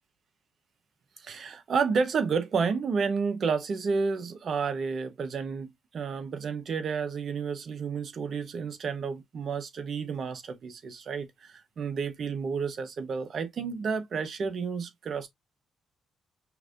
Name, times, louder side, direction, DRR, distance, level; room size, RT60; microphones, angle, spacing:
voice 1, 1.2-15.3, right 5 dB, 55° right, 1.0 m, -31 dB
5.7 x 2.7 x 2.5 m
cardioid pair, 90°, 0 cm